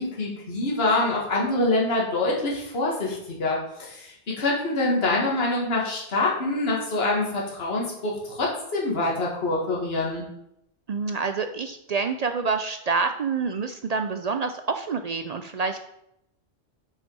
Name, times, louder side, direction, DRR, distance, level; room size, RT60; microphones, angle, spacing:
voice 1, 0.0-10.2, left 2 dB, 55° left, -3 dB, 1.8 m, -25 dB
voice 2, 10.9-15.9, right 4 dB, 65° right, 7 dB, 0.4 m, -27 dB
6.1 x 5.8 x 5.4 m, 0.80 s
omnidirectional pair, 1.2 m